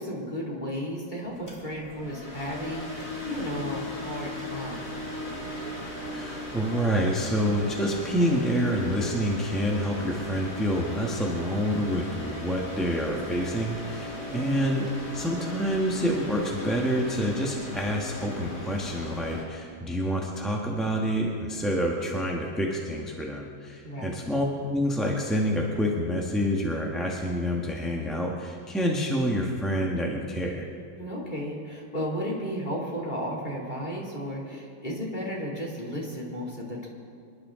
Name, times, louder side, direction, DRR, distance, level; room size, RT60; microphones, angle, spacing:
voice 1, 0.0-5.0 14.4-14.7 23.8-24.2 31.0-36.9, equal, 25° left, -4 dB, 2.9 m, -34 dB
sound 1, 1.2-19.4, left 1 dB, 50° left, 3.4 m, -37 dB
voice 2, 6.1-30.7, equal, ahead, -2 dB, 1.2 m, -27 dB
25.5 x 12.0 x 3.8 m, 2.5 s
omnidirectional pair, 1.9 m